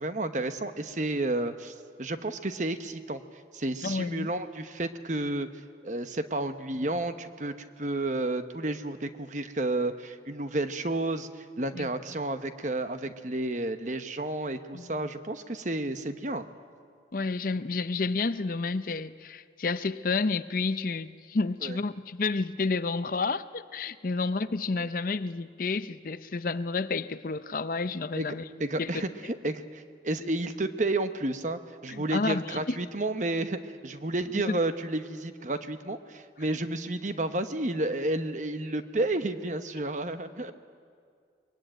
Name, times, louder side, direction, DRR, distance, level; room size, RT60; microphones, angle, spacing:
voice 1, 0.0-3.2 3.5-5.5 5.8-16.4 21.6-21.8 24.8-24.9 28.2-40.5, right 2 dB, 45° right, 9 dB, 1.0 m, -31 dB
voice 2, 3.8-4.3 11.7-11.9 14.7-14.9 17.1-28.4 28.8-29.0 31.9-32.8 34.5-34.6, left 3 dB, 50° left, 13 dB, 0.6 m, -30 dB
23.5 x 21.5 x 9.1 m, 2.2 s
head